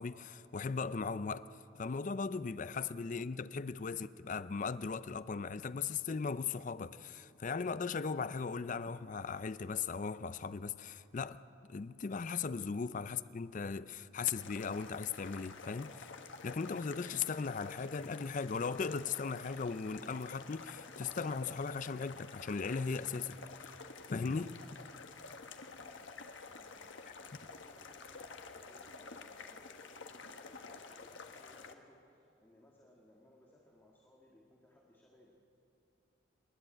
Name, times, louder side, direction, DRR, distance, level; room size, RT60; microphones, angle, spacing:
voice 1, 0.0-1.5 1.8-11.4 11.7-16.1 16.4-23.8 24.1-24.6, left 5 dB, 40° left, 0.4 m, -38 dB
sound 1, 14.3-31.7, left 4 dB, 70° left, 1.3 m, -50 dB
voice 2, 26.4-27.0 27.4-35.3, left 1 dB, 10° left, 1.8 m, -64 dB
28.5 x 11.0 x 8.8 m
head